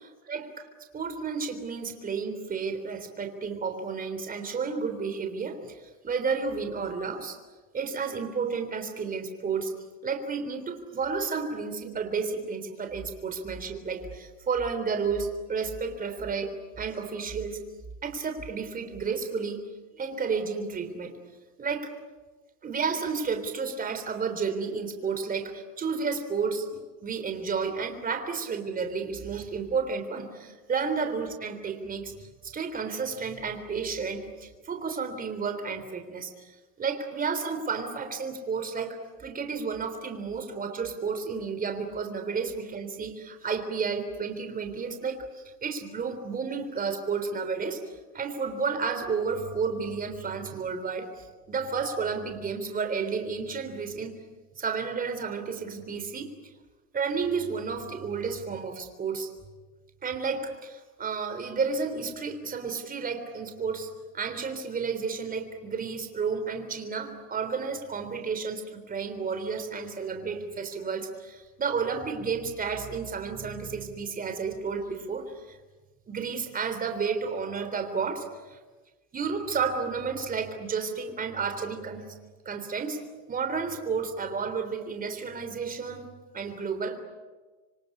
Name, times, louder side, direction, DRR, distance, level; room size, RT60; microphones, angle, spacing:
voice 1, 0.3-0.7 0.9-7.4 7.7-9.7 10.0-17.6 18.0-19.6 19.9-21.2 21.6-21.9 22.6-47.8 48.1-54.2 54.6-56.3 56.9-59.3 60.0-63.9 64.1-75.6 76.1-78.6 79.1-82.1 82.5-83.0 83.3-86.1 86.3-87.0, right 5 dB, 15° right, 7 dB, 3.5 m, -32 dB
27.0 x 24.5 x 8.6 m, 1.3 s
supercardioid pair, 140°, 48 cm